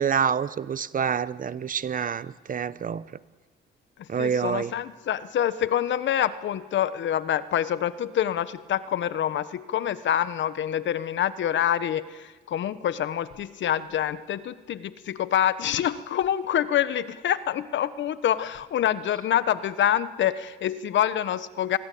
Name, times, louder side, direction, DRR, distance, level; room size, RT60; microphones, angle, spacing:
voice 1, 0.0-3.0 4.1-4.7, right 7 dB, 45° right, 16 dB, 0.9 m, -27 dB
voice 2, 4.2-21.8, left 10 dB, 70° left, 14 dB, 1.2 m, -26 dB
29.0 x 21.5 x 8.5 m, 1.4 s
cardioid pair, 90°, 20 cm